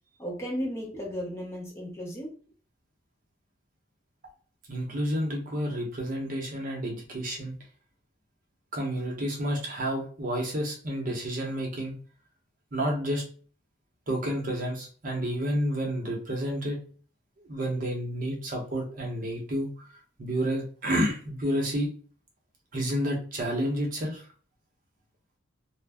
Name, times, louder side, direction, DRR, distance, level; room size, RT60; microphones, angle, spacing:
voice 1, 0.2-2.4, equal, 15° left, -1 dB, 0.7 m, -34 dB
voice 2, 4.7-7.5 8.7-12.0 12.7-13.2 14.1-16.8 17.5-19.7 20.2-21.9 22.7-24.2, equal, 45° right, 0 dB, 0.8 m, -30 dB
2.4 x 2.1 x 3.4 m, 0.42 s
head